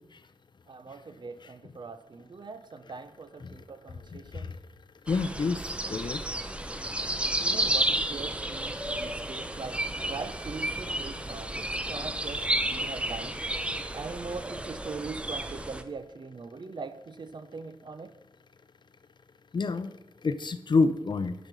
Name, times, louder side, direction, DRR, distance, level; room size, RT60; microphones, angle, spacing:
voice 1, 0.7-4.5 7.4-13.4 13.9-18.1, right 4 dB, 60° right, 0.7 m, -41 dB
voice 2, 5.1-5.6 5.9-6.2 19.5-19.9 20.2-21.3, left 4 dB, 60° left, 0.5 m, -27 dB
sound 1, 5.1-15.8, right 1 dB, 15° right, 0.6 m, -32 dB
10.5 x 5.1 x 6.1 m
wide cardioid pair, 105°, 9 cm